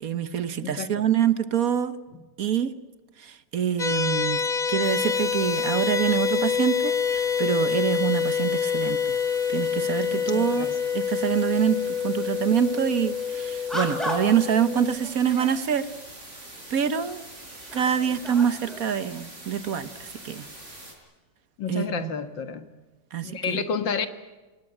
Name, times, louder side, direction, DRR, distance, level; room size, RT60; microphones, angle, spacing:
voice 1, 0.0-1.9 2.4-2.7 3.2-4.4 4.7-9.2 9.5-10.7 10.9-15.9 16.7-17.2 17.7-20.4 21.7-22.1 23.1-23.6, right 9 dB, 55° right, 1.3 m, -25 dB
voice 2, 0.6-1.1 10.1-10.8 21.6-22.7 23.2-24.1, left 6 dB, 85° left, 2.3 m, -30 dB
sound 1, 3.8-15.0, left 7 dB, 25° left, 1.6 m, -26 dB
sound 2, 4.8-20.9, right 1 dB, 40° right, 6.5 m, -44 dB
sound 3, 12.7-12.9 13.7-14.5 15.0-15.6 16.6-16.7 17.3-18.9, equal, ahead, 5.3 m, -35 dB
27.5 x 19.0 x 9.8 m
omnidirectional pair, 2.0 m